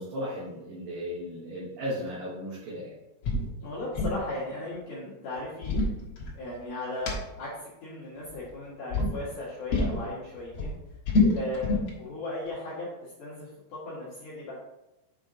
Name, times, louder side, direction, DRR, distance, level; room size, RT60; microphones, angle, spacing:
voice 1, 0.0-3.0, equal, 60° right, -7 dB, 2.9 m, -35 dB
sound 1, 3.2-3.5 3.7-4.2 5.4-6.6 7.1-7.2 8.2-8.6 8.9-9.1 9.7-10.0 10.4-11.9, left 3 dB, 75° left, 1.4 m, -26 dB
voice 2, 3.6-10.7 11.3-14.5, left 2 dB, 55° left, -10 dB, 2.8 m, -37 dB
7.7 x 5.0 x 3.9 m, 0.96 s
omnidirectional pair, 5.2 m